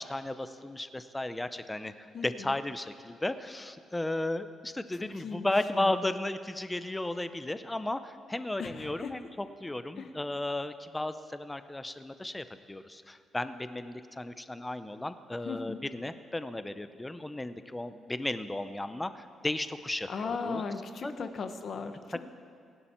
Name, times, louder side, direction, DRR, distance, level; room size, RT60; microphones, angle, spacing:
voice 1, 0.0-20.6 21.0-21.3, left 1 dB, 10° left, 11 dB, 0.6 m, -34 dB
voice 2, 2.1-2.5 5.1-6.0 8.6-9.1 10.0-10.1 15.4-15.8 20.1-22.3, left 5 dB, 40° left, 7 dB, 1.1 m, -37 dB
27.5 x 11.5 x 4.4 m, 2.3 s
cardioid pair, 160°, 0 cm